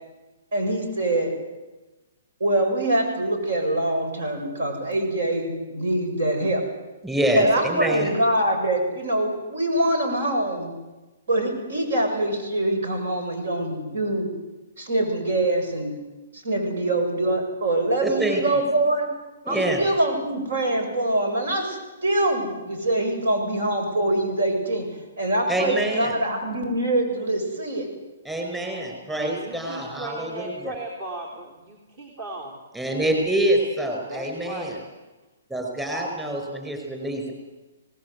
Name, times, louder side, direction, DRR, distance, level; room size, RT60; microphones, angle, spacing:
voice 1, 0.5-1.3 2.4-6.6 7.4-10.7 11.3-14.3 14.8-16.0 16.3-19.1 19.5-24.9 25.2-27.9, right 1 dB, 75° right, 4 dB, 7.4 m, -24 dB
voice 2, 7.0-8.1 18.0-18.4 19.4-19.8 25.5-26.1 28.2-30.7 32.7-34.7 35.5-37.3, right 1 dB, 10° right, 2 dB, 5.0 m, -26 dB
voice 3, 29.2-32.6 34.1-34.8, right 2 dB, 40° right, 1 dB, 3.7 m, -36 dB
25.5 x 19.0 x 8.3 m, 1.1 s
hypercardioid pair, 150°, 0 cm